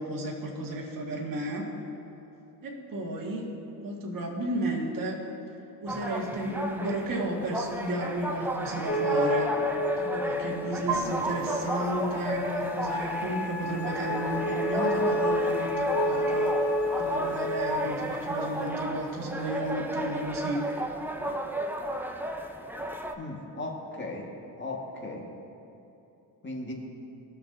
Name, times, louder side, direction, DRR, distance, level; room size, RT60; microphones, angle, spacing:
voice 1, 0.0-1.7 2.6-3.5 3.8-5.2 5.8-9.5 10.0-16.6 16.9-20.6, right 1 dB, 45° right, -1 dB, 1.9 m, -33 dB
sound 1, 5.9-23.1, equal, 5° right, 0.6 m, -34 dB
sound 2, 8.9-12.1 12.5-17.7, left 1 dB, 70° left, 2.0 m, -29 dB
sound 3, 10.9-18.7, right 4 dB, 90° right, 2.0 m, -41 dB
voice 2, 23.2-24.3 24.6-25.3 26.4-26.7, left 2 dB, 25° left, -1 dB, 1.7 m, -37 dB
16.0 x 6.7 x 2.7 m, 2.9 s
supercardioid pair, 75°, 46 cm